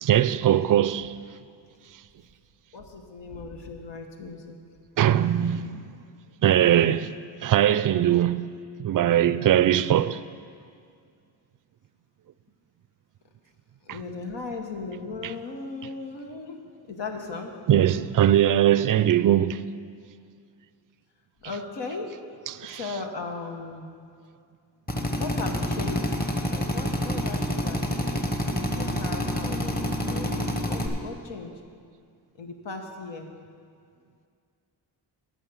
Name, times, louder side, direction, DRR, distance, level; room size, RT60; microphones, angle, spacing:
voice 1, 0.0-1.1 5.0-5.8 6.4-7.1 7.4-8.4 8.8-10.2 15.2-15.3 17.7-19.6 22.6-22.8, right 11 dB, 50° right, 0.4 m, -21 dB
voice 2, 2.7-4.6 13.8-16.6 16.9-17.5 21.4-22.1 22.6-23.9 25.1-26.1 26.5-31.5 32.4-33.3, left 3 dB, 75° left, 1.2 m, -37 dB
Drill, 24.9-30.9, equal, 20° left, 1.2 m, -28 dB
10.5 x 5.1 x 8.1 m
cardioid pair, 70°, 43 cm